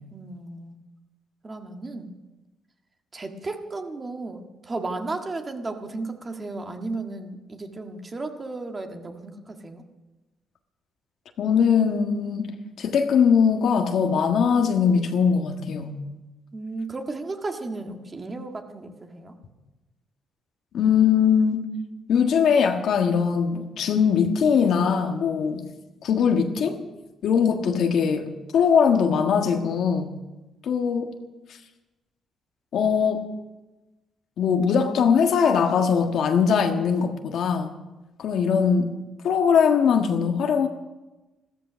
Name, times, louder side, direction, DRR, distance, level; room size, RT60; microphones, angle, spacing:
voice 1, 0.1-0.8 1.4-2.1 3.1-9.8 16.5-19.4, right 3 dB, 30° right, 1.7 m, -34 dB
voice 2, 11.4-16.1 20.7-21.7 22.1-25.7 26.0-26.8 27.2-30.2 30.6-31.1 32.7-33.3 34.4-37.7 38.2-38.9 39.2-40.7, left 6 dB, 70° left, 1.5 m, -21 dB
14.0 x 13.5 x 6.3 m
cardioid pair, 90°, 0 cm